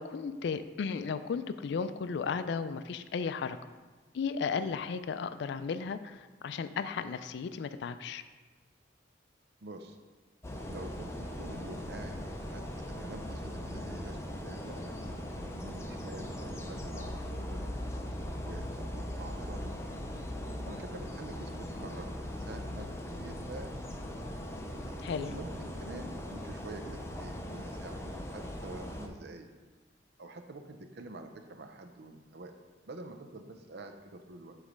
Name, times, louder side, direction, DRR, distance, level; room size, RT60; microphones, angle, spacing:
voice 1, 0.0-3.6 4.1-8.2 25.0-25.4, left 5 dB, 65° left, 12 dB, 0.3 m, -35 dB
voice 2, 9.6-10.0 10.7-12.2 12.5-14.9 15.5-17.7 18.4-19.8 20.7-22.1 22.4-23.7 25.3-28.0 28.3-29.5 30.2-32.6 32.9-34.6, right 2 dB, 60° right, 6 dB, 0.6 m, -47 dB
sound 1, 10.4-29.1, left 1 dB, 15° left, 0.5 m, -39 dB
7.1 x 3.2 x 5.0 m, 1.3 s
head